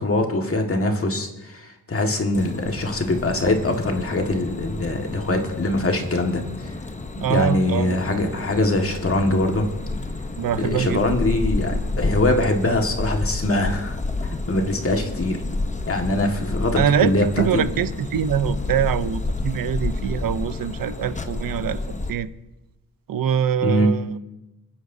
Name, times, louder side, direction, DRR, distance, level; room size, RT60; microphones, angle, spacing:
voice 1, 0.0-6.8 7.3-9.7 10.6-14.0 14.2-15.4 15.9-17.6 23.6-23.9, left 2 dB, 35° left, 3 dB, 1.8 m, -23 dB
sound 1, 2.3-22.1, left 2 dB, 20° left, 0.8 m, -30 dB
voice 2, 7.2-8.0 10.4-11.0 16.7-21.8 22.1-22.3 23.1-24.2, right 9 dB, 65° right, 14 dB, 0.7 m, -24 dB
25.5 x 9.8 x 2.7 m, 1.0 s
cardioid pair, 95°, 37 cm